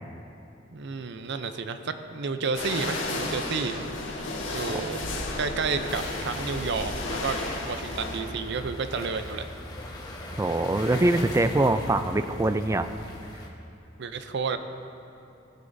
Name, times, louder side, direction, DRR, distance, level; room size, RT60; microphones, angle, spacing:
voice 1, 0.7-3.8 4.5-5.0 5.4-7.4 7.6-9.4 14.0-14.6, right 5 dB, 60° right, 9 dB, 0.5 m, -31 dB
sound 1, 2.5-8.2, left 2 dB, 75° left, 1.5 m, -33 dB
sound 2, 5.9-13.5, left 1 dB, 20° left, 1.1 m, -39 dB
voice 2, 10.4-12.9, right 2 dB, 15° right, 10 dB, 0.3 m, -23 dB
16.0 x 9.5 x 2.7 m, 2.9 s
head